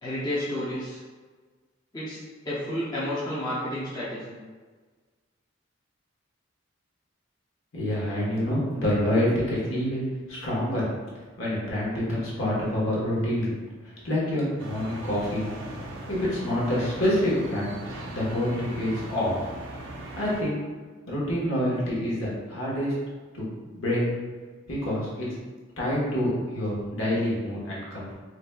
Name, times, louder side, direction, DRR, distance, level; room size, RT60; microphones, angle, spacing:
voice 1, 0.0-1.0 1.9-2.2 2.4-4.3, left 1 dB, 20° left, -10 dB, 0.7 m, -31 dB
voice 2, 7.7-10.0 10.3-10.8 11.4-13.5 14.0-15.5 16.1-17.7 18.1-19.4 20.2-20.6 21.1-22.9 23.3-23.5 23.8-24.0 24.7-25.2 25.8-28.1, left 1 dB, 80° left, -6 dB, 1.2 m, -27 dB
sound 1, 14.6-20.4, right 1 dB, 65° right, 0.6 m, -39 dB
4.0 x 3.3 x 2.3 m, 1.4 s
head